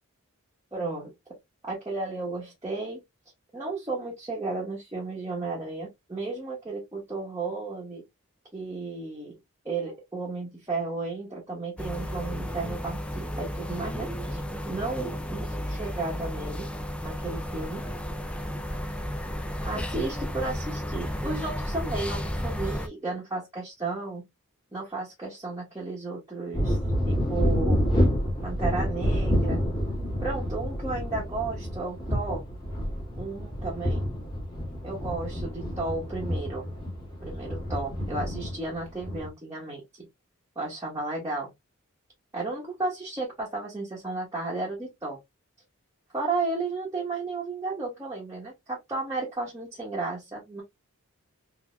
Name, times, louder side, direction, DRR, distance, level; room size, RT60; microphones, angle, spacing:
voice 1, 0.7-1.1 1.6-3.0 3.5-8.0 8.5-9.4 9.6-16.7 17.0-17.8 19.6-24.2 24.7-26.8 27.1-27.9 28.4-29.6 30.2-32.4 33.2-34.1 34.8-36.7 37.2-40.1 40.5-41.5 42.3-45.2 46.1-50.6, right 3 dB, 15° right, 1.2 m, -33 dB
sound 1, 11.8-22.9, equal, 5° left, 0.4 m, -33 dB
sound 2, 26.5-39.3, equal, 20° left, 1.6 m, -28 dB
3.9 x 2.9 x 2.2 m
head